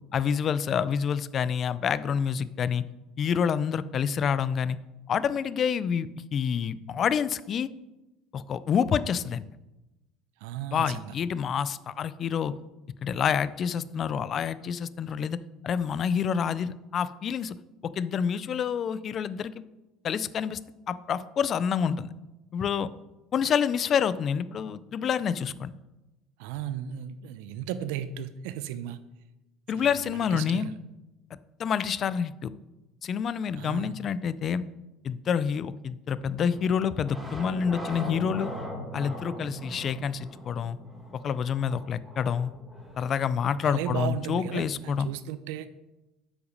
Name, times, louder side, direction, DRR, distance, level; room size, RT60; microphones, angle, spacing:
voice 1, 0.1-2.8 3.2-4.8 5.1-7.7 8.3-9.4 10.7-12.5 13.0-15.4 15.6-17.6 17.8-19.5 20.0-20.6 20.9-22.1 22.5-22.9 23.3-25.7 29.7-30.7 31.6-32.5 33.0-34.6 35.0-38.5 38.9-40.8 41.2-42.5 43.0-45.1, left 7 dB, 30° left, 16 dB, 0.3 m, -28 dB
voice 2, 10.4-11.1 26.4-29.0 29.7-30.7 33.6-33.9 43.6-45.7, right 10 dB, 85° right, 13 dB, 0.5 m, -35 dB
sound 1, 36.2-44.9, equal, 5° right, 1.4 m, -41 dB
8.0 x 5.8 x 5.2 m, 1.0 s
cardioid pair, 160°, 0 cm